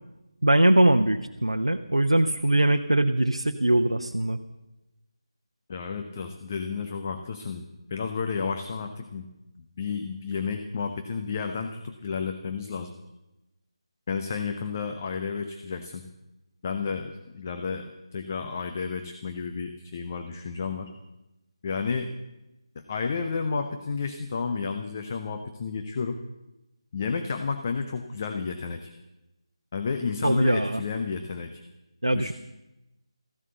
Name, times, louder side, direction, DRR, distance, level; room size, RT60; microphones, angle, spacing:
voice 1, 0.4-4.4 30.2-30.8 32.0-32.3, right 1 dB, 75° right, 5 dB, 0.8 m, -22 dB
voice 2, 5.7-9.3 9.6-12.9 14.1-16.0 16.6-20.9 21.6-22.1 22.7-26.2 26.9-28.9 29.7-31.6 32.1-32.3, left 5 dB, 30° left, 7 dB, 0.8 m, -31 dB
14.5 x 11.0 x 7.8 m, 0.97 s
figure-of-eight pair, 155°, 3 cm